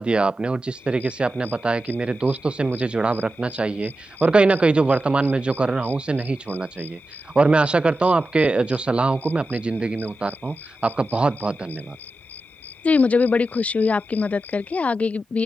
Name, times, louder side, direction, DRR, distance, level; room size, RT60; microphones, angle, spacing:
voice 1, 0.0-7.0 7.4-10.6 10.8-12.0, right 3 dB, 30° right, 4.0 m, -22 dB
sound 1, 0.7-14.8, left 9 dB, 70° left, 7.6 m, -44 dB
voice 2, 12.8-15.4, left 4 dB, 40° left, 2.6 m, -21 dB
hypercardioid pair, 45°, 3 cm